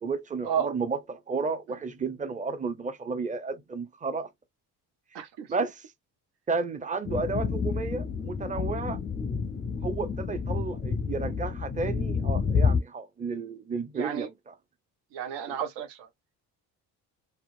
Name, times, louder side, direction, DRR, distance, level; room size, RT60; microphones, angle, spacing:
voice 1, 0.0-4.3 5.5-5.8 6.5-9.0 9.8-14.5 15.5-15.6, right 4 dB, 20° right, 0.7 m, -32 dB
voice 2, 5.1-5.5 13.9-14.3 15.1-16.1, right 8 dB, 75° right, 0.7 m, -32 dB
sound 1, 7.1-12.8, left 5 dB, 25° left, 0.5 m, -29 dB
2.8 x 2.1 x 2.5 m
hypercardioid pair, 55°, 43 cm